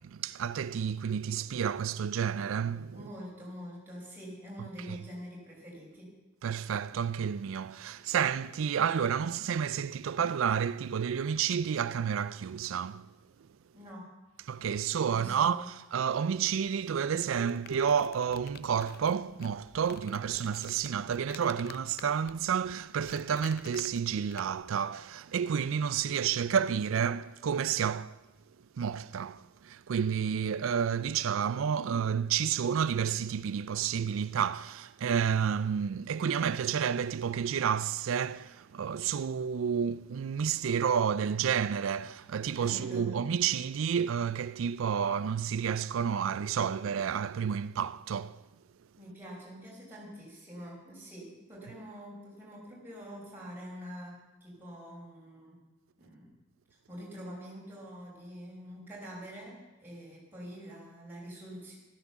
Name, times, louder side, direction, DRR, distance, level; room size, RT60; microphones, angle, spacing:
voice 1, 0.1-3.0 4.9-5.0 6.4-13.1 14.5-28.2 28.8-48.4, right 7 dB, 75° right, 0.4 m, -30 dB
voice 2, 2.9-6.1 13.7-14.1 15.0-15.7 42.5-43.1 49.0-55.6 56.0-56.3 56.7-61.8, equal, 10° right, 5.9 m, -45 dB
sound 1, 17.3-24.7, left 7 dB, 50° left, 0.6 m, -51 dB
13.5 x 13.5 x 7.1 m
head